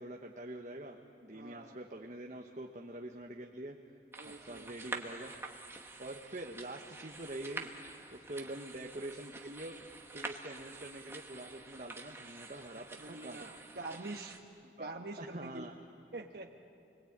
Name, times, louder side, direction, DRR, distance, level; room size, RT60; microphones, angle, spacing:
voice 1, 0.0-3.8 4.4-5.3 6.0-7.7 8.1-9.8 10.1-13.6 14.8-14.9 15.2-15.7, right 1 dB, 40° right, 1 dB, 1.3 m, -45 dB
voice 2, 1.3-1.8 4.2-5.0 8.3-8.6 13.0-14.4 14.8-15.7 16.1-16.5, right 2 dB, 60° right, 3 dB, 1.3 m, -46 dB
sound 1, 4.1-14.4, right 3 dB, 15° right, 1.4 m, -47 dB
29.5 x 21.5 x 8.8 m, 2.5 s
head